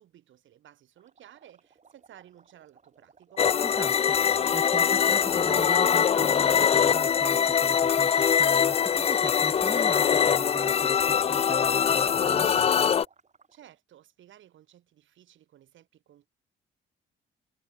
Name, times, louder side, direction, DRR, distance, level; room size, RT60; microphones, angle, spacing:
voice 1, 0.0-3.5 13.5-16.3, right 12 dB, 75° right, 4.2 m, -55 dB
sound 1, 1.0-13.8, right 5 dB, 35° right, 7.0 m, -61 dB
sound 2, 3.4-13.1, left 7 dB, 30° left, 0.3 m, -23 dB
voice 2, 3.6-12.9, right 3 dB, 15° right, 1.1 m, -40 dB
cardioid pair, 90°, 20 cm